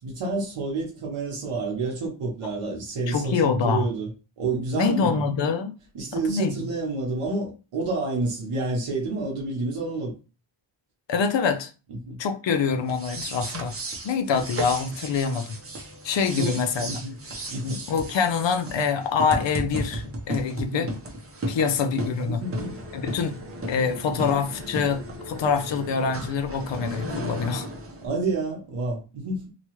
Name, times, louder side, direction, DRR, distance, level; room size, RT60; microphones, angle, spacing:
voice 1, 0.0-4.1 4.4-5.2 5.9-10.1 12.1-12.2 16.3-17.2 17.5-17.8 20.6-20.9 22.2-22.8 24.1-24.3 28.0-29.5, right 3 dB, 85° right, 1.0 m, -29 dB
voice 2, 3.1-3.9 4.8-5.7 6.1-6.6 11.1-11.7 12.2-13.7 14.0-15.5 16.0-16.9 17.6-20.9 21.5-22.4 22.9-23.4 23.7-27.7, left 5 dB, 60° left, 0.6 m, -25 dB
sound 1, 12.8-28.1, right 1 dB, 30° right, 0.7 m, -35 dB
2.9 x 2.3 x 2.9 m
wide cardioid pair, 110°, 50 cm